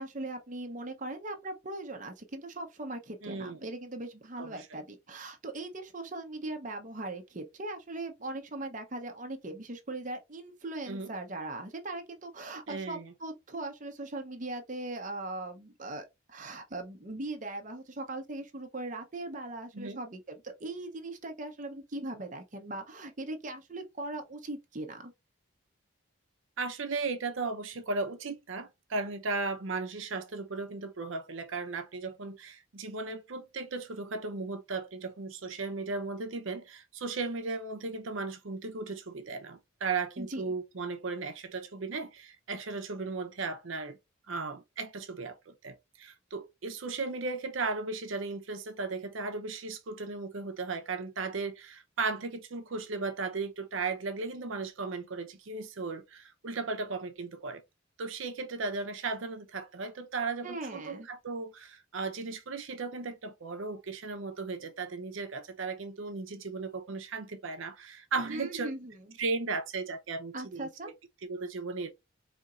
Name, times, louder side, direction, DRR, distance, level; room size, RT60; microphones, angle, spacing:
voice 1, 0.0-25.1 40.2-40.4 60.4-61.1 68.3-69.2 70.3-70.9, right 2 dB, 40° right, 0.7 m, -39 dB
voice 2, 3.2-3.6 4.4-4.8 10.9-11.1 12.7-13.1 19.7-20.0 26.6-44.0 44.3-57.6 58.0-68.7 69.2-70.7 71.2-71.9, right 3 dB, 70° right, 0.7 m, -36 dB
4.3 x 2.8 x 2.4 m
head